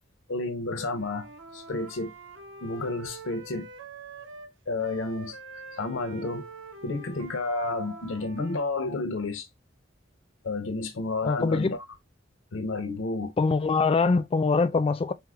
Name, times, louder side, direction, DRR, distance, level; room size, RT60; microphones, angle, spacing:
voice 1, 0.3-1.3 1.5-2.1 2.6-3.7 4.7-5.4 5.8-6.5 6.8-9.5 10.4-11.8 12.5-13.3, left 3 dB, 80° left, 0.6 m, -31 dB
Wind instrument woodwind instrument, 0.9-4.5 4.8-8.7, right 3 dB, 75° right, 0.6 m, -45 dB
voice 2, 11.2-11.8 13.4-15.1, left 4 dB, 30° left, 0.3 m, -23 dB
4.5 x 2.0 x 2.3 m
head